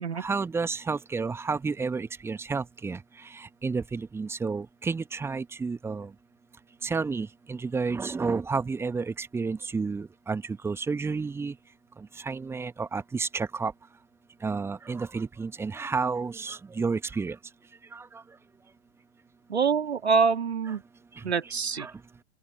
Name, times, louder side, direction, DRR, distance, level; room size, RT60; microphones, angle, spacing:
voice 1, 0.2-3.0 3.6-6.1 6.8-11.5 12.2-13.7 14.4-17.3 17.9-18.0 21.8-21.9, right 4 dB, 5° right, 1.5 m, -30 dB
voice 2, 19.5-20.8 21.2-21.9, right 5 dB, 70° right, 2.4 m, -25 dB
open air
figure-of-eight pair, 110°, 34 cm